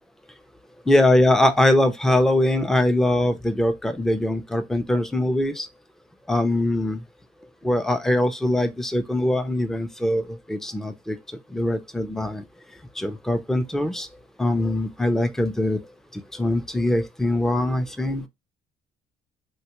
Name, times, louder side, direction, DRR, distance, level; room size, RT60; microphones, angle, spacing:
voice 1, 0.9-5.7 6.3-7.0 7.6-11.2 11.5-12.4 13.0-14.1 14.4-15.8 16.3-18.3, left 1 dB, ahead, 0.5 m, -22 dB
3.6 x 2.2 x 2.9 m
cardioid pair, 110°, 17 cm